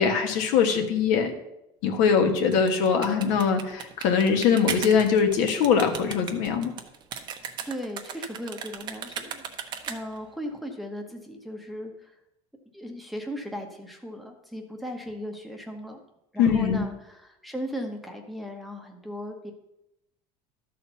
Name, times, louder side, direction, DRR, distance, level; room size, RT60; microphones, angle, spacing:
voice 1, 0.0-1.3 1.8-6.7 16.4-16.8, left 6 dB, 70° left, 5 dB, 1.5 m, -22 dB
sound 1, 2.4-10.3, right 8 dB, 35° right, 0.9 m, -37 dB
voice 2, 7.6-9.4 9.9-12.1 12.7-16.0 16.3-19.5, equal, ahead, 2 dB, 1.0 m, -37 dB
12.5 x 4.3 x 6.8 m, 0.86 s
cardioid pair, 155°, 13 cm